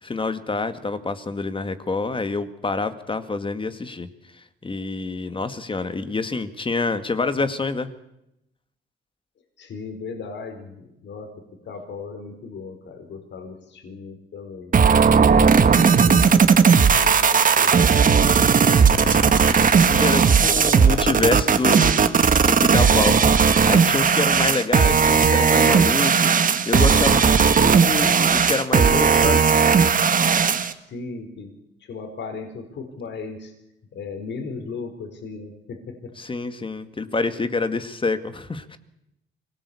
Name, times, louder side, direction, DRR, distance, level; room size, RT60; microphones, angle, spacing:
voice 1, 0.0-4.1 4.3-7.9 18.7-29.4 36.2-38.8, left 3 dB, 25° left, 10 dB, 2.0 m, -27 dB
voice 2, 9.6-11.3 11.6-14.7 15.2-18.5 30.9-31.5 31.8-33.5 33.9-36.1, left 4 dB, 65° left, 6 dB, 4.6 m, -36 dB
sound 1, 14.7-30.7, right 6 dB, 45° right, 1.7 m, -16 dB
24.5 x 18.5 x 8.5 m, 0.86 s
cardioid pair, 90°, 20 cm